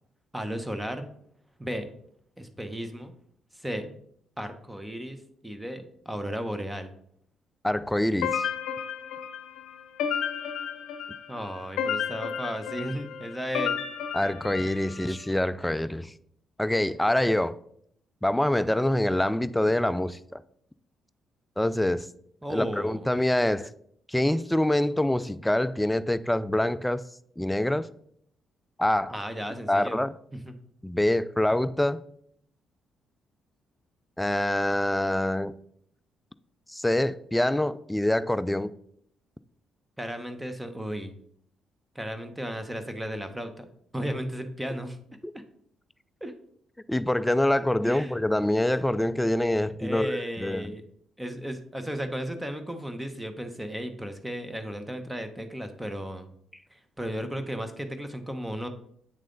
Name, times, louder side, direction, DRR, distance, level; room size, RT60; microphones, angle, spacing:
voice 1, 0.3-1.1 1.6-1.9 2.4-3.1 3.5-3.9 4.4-6.9 11.3-13.8 22.4-23.1 29.1-30.0 40.0-41.1 41.9-43.7 43.9-45.0 45.3-45.4 46.2-46.3 47.8-48.2 49.8-50.8 51.2-56.3 56.7-58.7, equal, 10° right, 0.8 m, -34 dB
voice 2, 7.6-8.5 14.1-16.1 16.6-17.6 18.2-20.4 21.6-22.1 22.5-23.7 24.1-27.0 27.4-27.9 28.8-29.2 29.7-30.1 30.8-32.0 34.2-35.6 36.7-38.7 46.9-50.7, left 1 dB, 5° left, 0.3 m, -25 dB
sound 1, 8.2-15.1, left 8 dB, 85° left, 0.6 m, -32 dB
8.6 x 3.2 x 3.8 m
cardioid pair, 90°, 0 cm